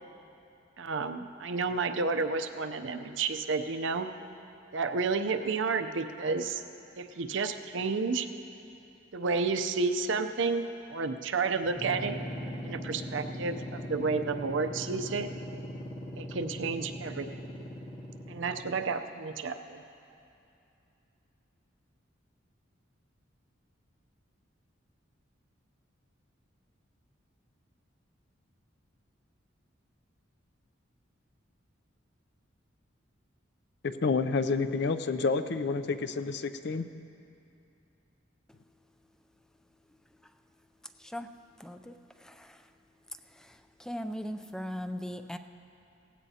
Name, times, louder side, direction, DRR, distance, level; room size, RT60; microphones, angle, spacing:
voice 1, 0.8-4.1 4.7-6.6 7.0-8.3 9.1-12.2 12.6-15.3 16.2-17.3 18.3-19.8, right 4 dB, 70° right, 8 dB, 0.6 m, -31 dB
sound 1, 11.6-19.0, equal, 40° left, 1.5 m, -40 dB
voice 2, 33.8-36.9, left 4 dB, 60° left, 11 dB, 0.5 m, -29 dB
voice 3, 41.6-41.9 42.2-42.5 43.8-45.4, equal, 5° left, 8 dB, 0.3 m, -38 dB
18.0 x 16.0 x 2.8 m, 2.7 s
head